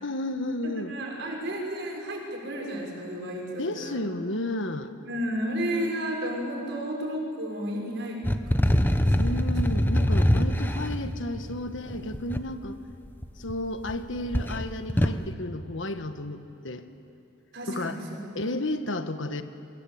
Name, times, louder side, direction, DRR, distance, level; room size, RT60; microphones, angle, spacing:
voice 1, 0.0-0.9 3.6-4.9 9.2-12.8 13.4-16.8 17.7-18.0 18.3-19.4, left 1 dB, 65° left, 9 dB, 1.4 m, -32 dB
voice 2, 0.6-4.0 5.1-8.2 8.5-9.1 17.5-18.0, equal, 60° right, -1 dB, 6.5 m, -32 dB
sound 1, 8.2-12.4 13.2-14.0 14.3-15.2, equal, 10° left, 1.0 m, -24 dB
27.5 x 23.5 x 8.7 m, 2.6 s
head